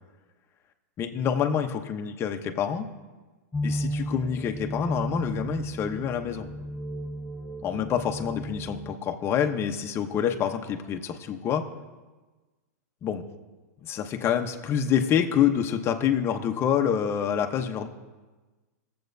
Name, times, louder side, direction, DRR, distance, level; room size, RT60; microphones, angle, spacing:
voice 1, 1.0-2.9 3.6-6.5 7.6-11.6 13.0-13.2 13.8-17.9, left 8 dB, 30° left, 5 dB, 0.8 m, -27 dB
sound 1, 3.5-8.9, equal, 10° left, 0.4 m, -34 dB
20.0 x 7.7 x 2.7 m, 1.3 s
hypercardioid pair, 130°, 9 cm